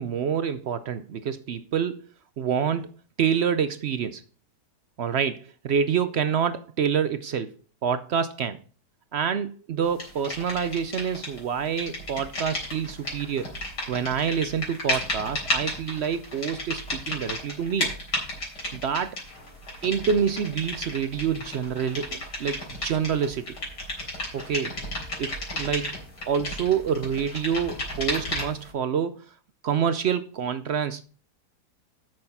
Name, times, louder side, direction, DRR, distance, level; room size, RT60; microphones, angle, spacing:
voice 1, 0.0-2.0 2.4-2.9 3.2-4.2 5.0-7.5 7.8-8.6 9.1-13.5 13.9-17.9 18.7-19.2 19.8-23.6 24.3-24.8 25.2-26.0 26.3-29.2 29.6-31.0, right 7 dB, 70° right, 0.6 m, -27 dB
sound 1, 10.0-11.4 11.6-28.7, left 1 dB, 75° left, 4.3 m, -33 dB
8.7 x 6.5 x 5.5 m
omnidirectional pair, 1.8 m